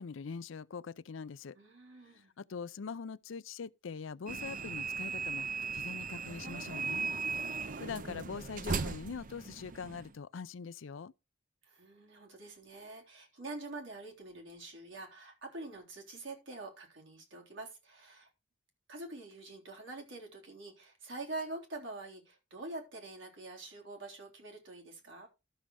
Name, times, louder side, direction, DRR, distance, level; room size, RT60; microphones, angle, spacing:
voice 1, 0.0-1.6 2.1-5.5 5.7-7.1 7.6-11.1, left 5 dB, 80° left, 0.5 m, -43 dB
voice 2, 1.6-2.3 11.7-18.3 18.9-25.3, right 2 dB, 75° right, 3.6 m, -45 dB
sound 1, 4.3-10.1, right 4 dB, 40° right, 0.5 m, -37 dB
12.5 x 6.5 x 4.7 m
head